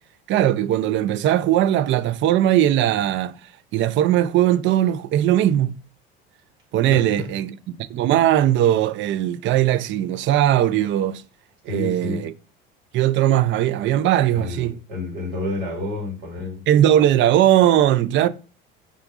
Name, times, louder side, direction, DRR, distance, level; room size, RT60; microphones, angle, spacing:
voice 1, 0.3-3.3 3.7-5.7 6.7-7.5 7.9-11.2 11.7-12.3 12.9-14.8 16.7-18.3, right 12 dB, 40° right, 0.4 m, -19 dB
voice 2, 6.9-7.3 11.7-12.2 14.3-16.6, left 2 dB, 75° right, 1.6 m, -30 dB
3.6 x 2.3 x 3.7 m
hypercardioid pair, 70°, 30 cm